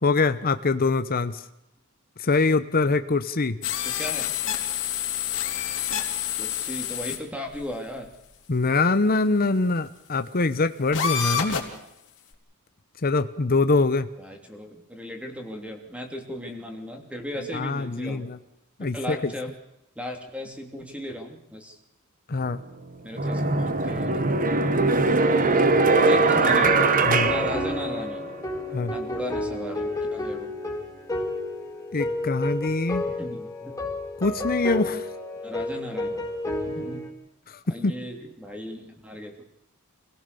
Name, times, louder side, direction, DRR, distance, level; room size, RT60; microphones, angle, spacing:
voice 1, 0.0-1.4 2.2-3.6 8.5-11.6 13.0-14.1 17.5-18.4 18.8-19.2 22.3-22.6 27.1-27.3 28.7-28.9 31.9-33.1 34.2-35.1 37.8-37.9, left 3 dB, 40° left, 10 dB, 0.9 m, -23 dB
sound 1, 3.6-7.2 7.5-7.6 8.5-8.6 10.9-11.8, left 9 dB, 60° left, 3.4 m, -28 dB
voice 2, 3.8-4.3 6.4-8.1 14.2-18.3 18.8-19.5 19.9-21.8 23.0-24.4 25.2-25.7 26.1-26.8 27.2-28.3 28.9-30.6 33.2-33.8 35.4-36.2 36.7-37.1 37.7-39.5, equal, 5° right, 3 dB, 3.0 m, -36 dB
sound 2, 22.4-22.5 23.2-28.3, right 3 dB, 40° right, 1.2 m, -21 dB
sound 3, 25.9-37.1, left 2 dB, 15° left, 4.0 m, -31 dB
26.5 x 17.0 x 6.9 m, 0.84 s
head